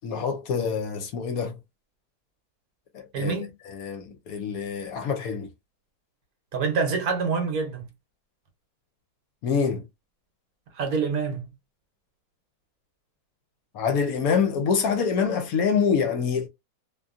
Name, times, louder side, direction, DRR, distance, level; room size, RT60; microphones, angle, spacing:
voice 1, 0.0-1.6 2.9-3.3 3.7-5.5 9.4-9.9 13.7-16.5, left 6 dB, 70° left, 1.0 m, -26 dB
voice 2, 3.1-3.5 6.5-7.8 10.7-11.5, right 5 dB, 65° right, 1.1 m, -26 dB
2.6 x 2.5 x 2.3 m
omnidirectional pair, 1.7 m